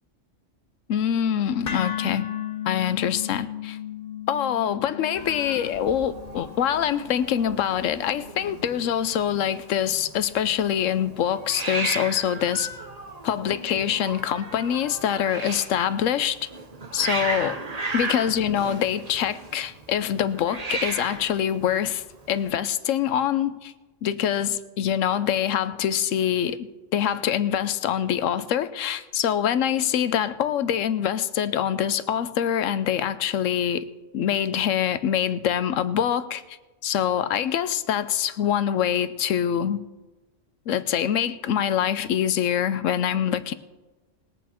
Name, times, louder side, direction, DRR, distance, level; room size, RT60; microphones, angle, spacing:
voice 1, 0.9-2.3 2.7-3.8 4.3-12.7 13.2-16.5 16.9-17.6 17.9-23.7 24.0-33.9 34.1-36.6 36.8-39.8 40.7-43.5, left 9 dB, 90° left, 1.0 m, -25 dB
sound 1, 1.7-9.8, left 9 dB, 40° left, 1.0 m, -36 dB
Hiss, 5.2-22.5, right 3 dB, 35° right, 1.0 m, -36 dB
20.5 x 8.3 x 4.4 m
omnidirectional pair, 1.3 m